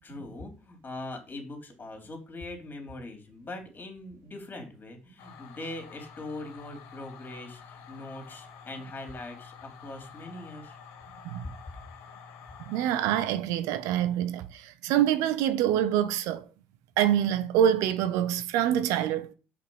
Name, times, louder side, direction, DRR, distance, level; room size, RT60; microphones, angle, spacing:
voice 1, 0.0-10.8, left 2 dB, 30° left, 3.2 m, -41 dB
sound 1, 5.2-13.2, left 6 dB, 70° left, 1.4 m, -49 dB
voice 2, 12.7-16.4 17.0-19.3, right 10 dB, 70° right, 0.6 m, -26 dB
5.8 x 5.2 x 5.5 m
hypercardioid pair, 50°, 6 cm